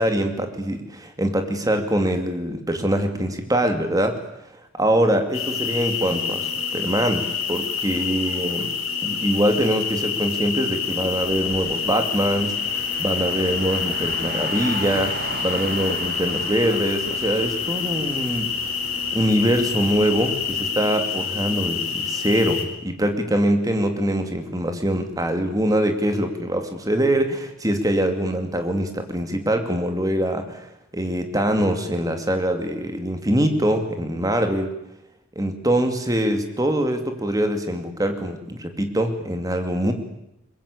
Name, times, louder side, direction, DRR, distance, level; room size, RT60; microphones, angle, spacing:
voice 1, 0.0-4.2 4.8-8.7 9.0-18.5 19.1-34.7 35.4-39.9, right 1 dB, 15° right, 6 dB, 2.5 m, -23 dB
sound 1, 5.3-22.6, left 6 dB, 85° left, 4.4 m, -27 dB
Car, 11.2-20.7, right 3 dB, 45° right, 3.0 m, -37 dB
22.0 x 21.0 x 8.6 m, 0.84 s
head